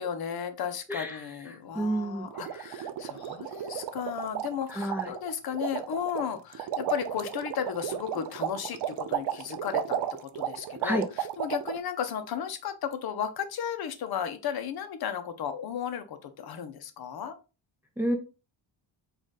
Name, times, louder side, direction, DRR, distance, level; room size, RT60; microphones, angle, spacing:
voice 1, 0.0-17.3, left 8 dB, 50° left, 8 dB, 0.7 m, -34 dB
voice 2, 0.9-1.2 1.8-2.3 2.6-2.7 4.7-5.1 10.8-11.0 18.0-18.2, right 1 dB, 5° right, 3 dB, 0.5 m, -29 dB
sound 1, 2.3-11.8, right 10 dB, 60° right, 0.5 m, -34 dB
3.8 x 2.5 x 3.7 m, 0.31 s
cardioid pair, 125°, 48 cm